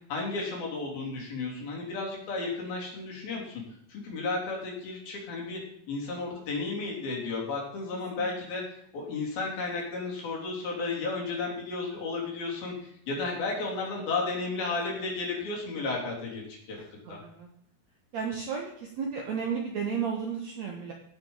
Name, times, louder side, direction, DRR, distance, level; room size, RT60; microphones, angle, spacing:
voice 1, 0.1-3.6 3.9-5.6 5.9-16.8 17.1-17.2, left 3 dB, 65° left, -2 dB, 5.0 m, -33 dB
voice 2, 16.8-17.5 18.1-20.9, right 6 dB, 65° right, 2 dB, 1.8 m, -33 dB
16.5 x 6.1 x 5.5 m, 0.70 s
omnidirectional pair, 4.6 m